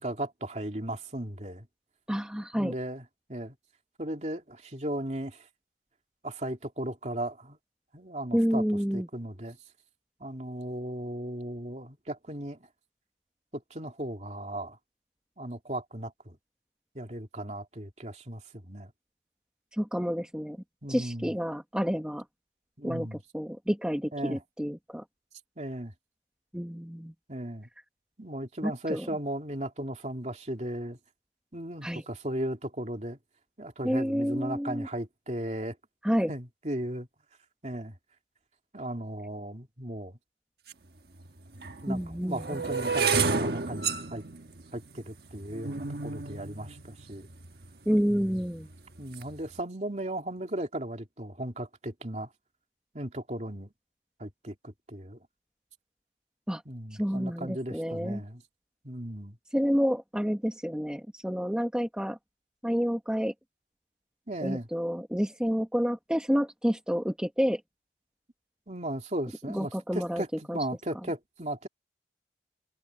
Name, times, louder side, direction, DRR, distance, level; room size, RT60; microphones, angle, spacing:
voice 1, 0.0-1.7 2.5-3.0 3.3-3.6 4.0-5.5 6.2-7.6 7.9-8.6 8.9-9.6 10.2-12.7 13.5-14.8 15.4-16.4 16.9-18.9 20.8-21.3 22.8-23.2 24.1-24.4 25.6-25.9 27.3-27.7 28.2-31.0 31.5-33.2 33.6-35.8 36.3-37.1 37.6-38.0 38.7-40.2 41.8-44.2 44.7-47.3 48.1-48.4 49.0-52.3 52.9-53.7 54.2-55.2 56.6-58.4 58.8-59.4 64.3-64.7 68.7-71.7, right 1 dB, 40° right, 3.0 m, -36 dB
voice 2, 2.1-2.7 8.3-9.1 19.7-20.6 20.9-22.2 22.8-25.0 26.5-27.1 28.6-29.1 31.8-32.0 33.8-34.9 36.0-36.3 41.9-42.6 47.8-48.7 56.5-56.6 56.9-58.2 59.5-62.2 62.6-63.3 64.4-67.6 69.5-70.2 70.5-70.6, equal, 5° right, 1.3 m, -29 dB
sound 1, 40.7-40.8 41.5-47.7 48.4-48.7 49.0-49.4, right 4 dB, 60° right, 1.4 m, -31 dB
open air
head